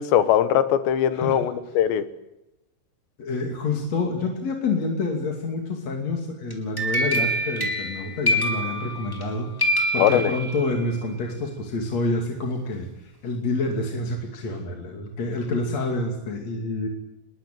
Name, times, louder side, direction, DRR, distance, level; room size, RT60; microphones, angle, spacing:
voice 1, 0.0-2.1 10.0-10.3, left 10 dB, 80° left, 12 dB, 3.6 m, -21 dB
voice 2, 3.2-16.9, left 2 dB, 45° left, 2 dB, 3.4 m, -28 dB
sound 1, 6.5-9.3 9.6-10.9, equal, 5° left, 3.8 m, -26 dB
26.5 x 21.5 x 9.2 m, 0.95 s
omnidirectional pair, 5.0 m